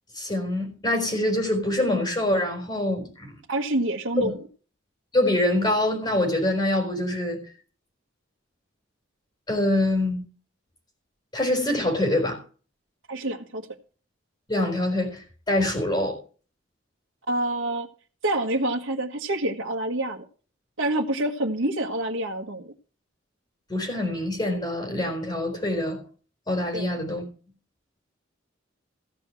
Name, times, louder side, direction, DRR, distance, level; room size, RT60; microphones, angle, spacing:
voice 1, 0.1-3.3 4.2-4.3 5.1-7.4 9.5-10.2 11.3-12.4 14.5-16.2 23.7-26.0 26.5-27.3, left 1 dB, 25° left, 4.2 m, -25 dB
voice 2, 3.5-4.4 13.1-13.6 17.3-17.9 18.2-20.2 20.8-22.7 26.7-26.9, right 1 dB, 90° right, 1.5 m, -27 dB
15.5 x 5.7 x 7.7 m
head